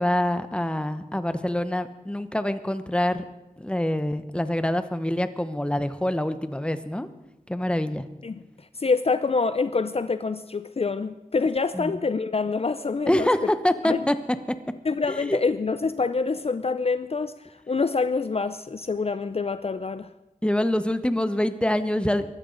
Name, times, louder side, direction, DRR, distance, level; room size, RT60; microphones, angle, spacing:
voice 1, 0.0-3.2 3.6-7.1 7.5-8.0 11.7-12.0 13.1-14.1 15.1-15.4 20.4-22.3, left 1 dB, 5° left, 0.9 m, -25 dB
voice 2, 8.2-13.5 13.8-14.0 14.8-20.1, left 4 dB, 45° left, 0.5 m, -26 dB
22.0 x 12.5 x 3.9 m
wide cardioid pair, 70°, 14 cm